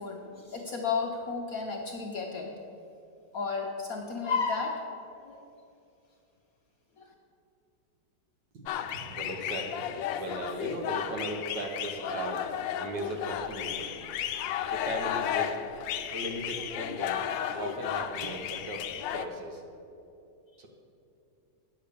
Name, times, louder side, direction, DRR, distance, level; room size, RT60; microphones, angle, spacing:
voice 1, 0.0-2.5 3.3-4.8 5.2-5.4 7.0-7.1, left 5 dB, 60° left, 1 dB, 1.0 m, -32 dB
voice 2, 8.5-9.9 10.2-12.5 12.8-13.9 14.7-15.5 16.1-17.2 17.6-19.6 20.6-20.7, right 1 dB, 60° right, 2 dB, 1.7 m, -37 dB
sound 1, 8.7-19.3, left 10 dB, 75° left, 1.2 m, -34 dB
9.5 x 7.2 x 6.8 m, 2.7 s
omnidirectional pair, 2.2 m